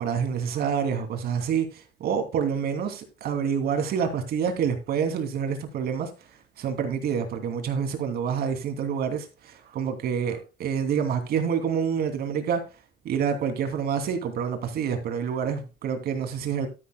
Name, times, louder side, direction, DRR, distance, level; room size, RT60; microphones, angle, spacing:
voice 1, 0.0-6.1 6.6-12.6 13.0-16.7, right 7 dB, 65° right, 2.7 m, -27 dB
12.5 x 10.5 x 2.2 m
cardioid pair, 110°, 17 cm